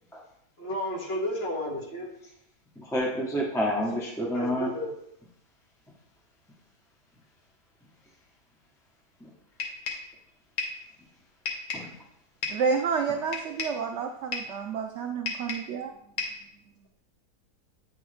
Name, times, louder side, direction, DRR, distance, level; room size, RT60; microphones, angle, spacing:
voice 1, 0.6-2.1 4.3-4.9, left 1 dB, 40° left, -3 dB, 1.5 m, -32 dB
voice 2, 2.8-4.7 9.2-9.3 11.7-11.9, equal, 5° left, -2 dB, 0.4 m, -28 dB
sound 1, 9.6-10.1 10.6-10.8 11.5-11.9 12.4-12.7 13.3-13.8 14.3-14.6 15.3-15.7 16.2-16.5, left 4 dB, 70° left, 1.6 m, -33 dB
voice 3, 12.5-15.9, right 5 dB, 80° right, 4 dB, 0.6 m, -29 dB
8.7 x 4.6 x 3.2 m, 0.75 s
omnidirectional pair, 1.8 m